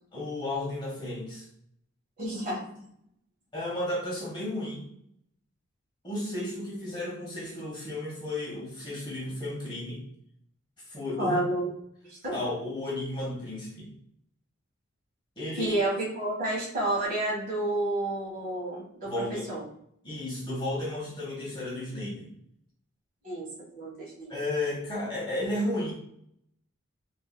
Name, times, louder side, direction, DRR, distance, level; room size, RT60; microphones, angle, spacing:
voice 1, 0.1-1.4 3.5-4.9 6.0-10.0 10.9-11.4 12.3-13.9 15.4-15.8 19.1-19.5 20.0-22.3 24.3-25.9, left 1 dB, 20° left, -5 dB, 1.0 m, -33 dB
voice 2, 2.2-2.7 11.2-11.7 12.1-12.3 15.6-19.6 23.2-23.5 23.7-24.3, right 1 dB, 40° right, -5 dB, 1.4 m, -30 dB
3.8 x 2.6 x 2.2 m, 0.69 s
head